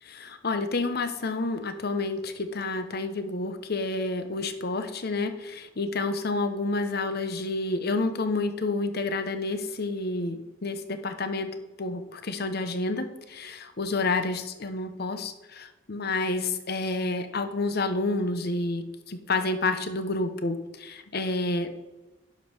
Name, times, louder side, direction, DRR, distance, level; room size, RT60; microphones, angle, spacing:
voice 1, 0.0-21.7, left 3 dB, 55° left, 9 dB, 0.9 m, -29 dB
11.0 x 5.3 x 6.1 m, 1.1 s
head